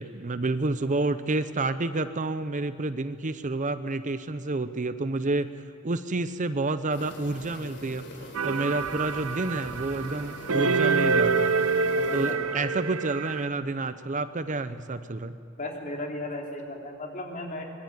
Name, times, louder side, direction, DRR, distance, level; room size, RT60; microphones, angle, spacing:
voice 1, 0.0-5.5 5.8-11.5 12.1-15.4, right 2 dB, 35° right, 12 dB, 0.7 m, -29 dB
sound 1, 6.9-12.3, left 1 dB, 55° left, 3.7 m, -42 dB
sound 2, 8.3-13.5, right 4 dB, 80° right, 1.0 m, -26 dB
voice 2, 11.9-12.7 15.6-17.6, left 1 dB, 40° left, 1 dB, 3.7 m, -35 dB
24.0 x 22.5 x 9.5 m, 2.4 s
head